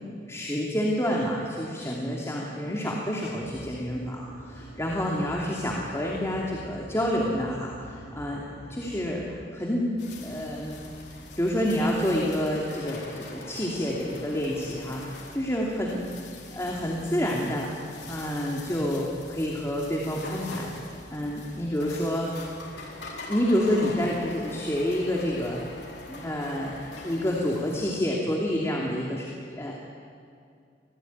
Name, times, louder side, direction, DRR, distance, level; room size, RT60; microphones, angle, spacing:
voice 1, 0.2-8.4 8.7-9.9 10.2-10.8 11.4-16.0 16.5-17.7 18.1-20.7 21.1-22.4 23.3-25.6 26.1-29.7, equal, 15° left, -3 dB, 2.8 m, -28 dB
sound 1, 3.4-9.5, right 1 dB, 40° left, 7.1 m, -45 dB
sound 2, 10.0-27.9, left 2 dB, 75° left, 4.5 m, -43 dB
26.0 x 17.0 x 9.6 m, 2.3 s
head